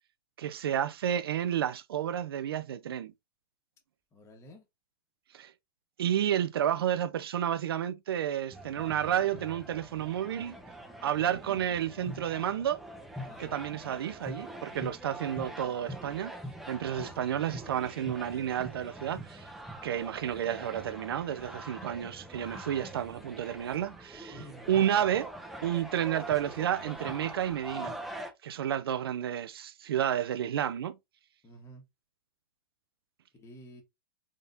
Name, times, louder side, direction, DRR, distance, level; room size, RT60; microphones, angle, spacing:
voice 1, 0.4-3.1 5.3-5.5 6.0-10.6 11.0-12.8 13.4-16.3 16.7-19.5 19.8-24.4 24.7-25.3 25.6-28.0 28.4-31.0, right 10 dB, 80° right, 0.6 m, -31 dB
voice 2, 4.1-4.7 13.3-13.6 24.3-24.8 31.4-31.8 33.3-33.8, equal, 25° left, 1.5 m, -50 dB
sound 1, 8.5-28.3, right 1 dB, ahead, 0.9 m, -43 dB
3.9 x 3.7 x 2.6 m
hypercardioid pair, 125°, 12 cm